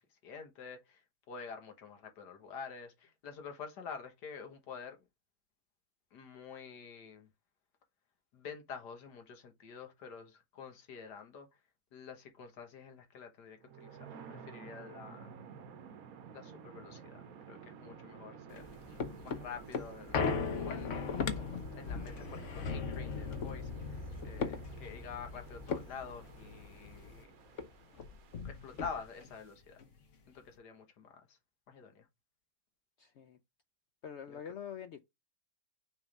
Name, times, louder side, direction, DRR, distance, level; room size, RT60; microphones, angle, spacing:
voice 1, 0.0-5.0 6.1-7.3 8.3-11.6 11.9-15.4 16.3-18.7 19.2-21.2 21.7-27.3 28.4-29.8 30.3-31.4 31.7-32.1 34.3-34.4, left 6 dB, 85° left, 1.8 m, -48 dB
sound 1, 13.6-29.5, right 7 dB, 65° right, 1.2 m, -53 dB
sound 2, 18.5-27.2 27.6-27.7 27.9-29.3 29.8-29.9, left 5 dB, 55° left, 1.2 m, -38 dB
voice 2, 33.0-33.4 34.0-35.0, left 8 dB, 70° left, 0.6 m, -45 dB
6.3 x 3.2 x 5.2 m
omnidirectional pair, 1.7 m